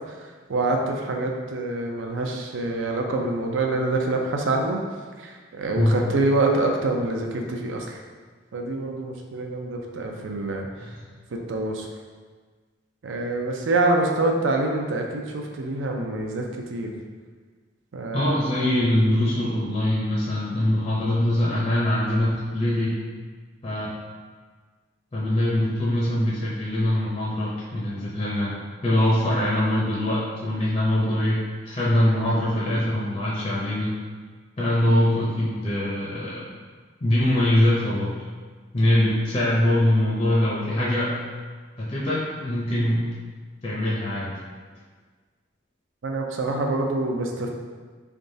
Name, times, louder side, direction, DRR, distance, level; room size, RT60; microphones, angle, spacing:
voice 1, 0.1-4.8 5.2-8.0 8.5-10.7 11.3-11.9 13.0-16.4 16.7-16.9 17.9-18.4 46.0-47.5, right 2 dB, 80° right, 2 dB, 0.5 m, -26 dB
voice 2, 18.1-22.9 23.6-23.9 25.1-28.5 28.8-31.4 31.7-33.9 34.6-36.4 37.0-38.1 38.7-41.1 41.8-43.0 43.6-44.3, left 1 dB, 35° left, -6 dB, 0.5 m, -23 dB
3.8 x 3.4 x 2.6 m, 1.5 s
head